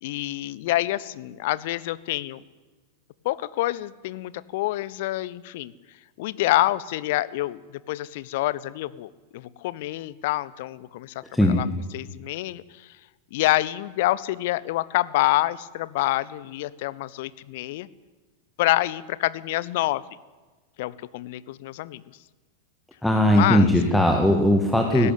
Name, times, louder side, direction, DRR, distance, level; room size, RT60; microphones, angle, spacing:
voice 1, 0.0-2.4 3.2-5.7 6.2-7.6 7.9-11.2 11.5-11.7 11.9-13.0 13.3-17.9 18.6-20.0 20.8-22.0 23.3-23.6 24.9-25.1, left 17 dB, 50° left, 20 dB, 0.8 m, -27 dB
voice 2, 11.2-11.6 23.0-25.1, left 1 dB, 5° left, 2 dB, 2.0 m, -19 dB
19.0 x 16.5 x 9.2 m, 1.3 s
figure-of-eight pair, 90°, 0 cm